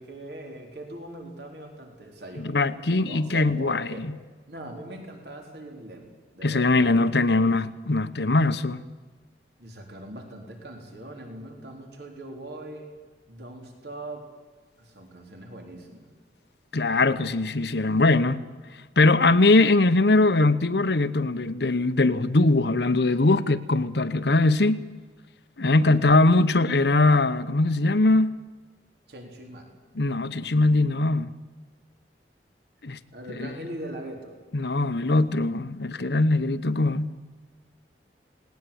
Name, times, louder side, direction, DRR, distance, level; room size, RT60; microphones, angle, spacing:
voice 1, 0.0-4.1 4.5-7.1 9.6-12.9 13.3-14.3 14.8-16.1 25.9-26.1 29.1-29.7 33.1-34.3, right 1 dB, 70° right, 3.9 m, -41 dB
voice 2, 2.4-4.1 6.4-8.8 16.7-18.4 19.0-24.8 25.6-28.3 29.9-31.3 32.8-33.0 33.4-33.5 34.5-37.1, left 2 dB, 70° left, 0.9 m, -21 dB
19.0 x 19.0 x 8.8 m
head